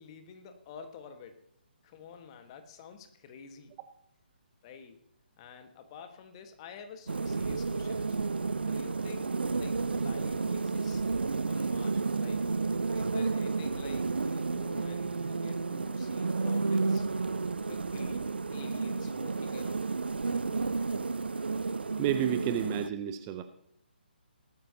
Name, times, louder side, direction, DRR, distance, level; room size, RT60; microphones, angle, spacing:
voice 1, 0.0-1.4 1.8-3.8 4.6-5.0 5.4-8.3 8.6-11.1 11.5-12.5 12.9-17.1 17.6-19.9, left 6 dB, 30° left, 7 dB, 1.4 m, -49 dB
sound 1, 7.1-22.9, right 4 dB, 70° right, 0.5 m, -31 dB
voice 2, 22.0-23.4, right 11 dB, 20° right, 9 dB, 0.6 m, -30 dB
18.5 x 12.5 x 2.8 m, 0.72 s
figure-of-eight pair, 140°, 6 cm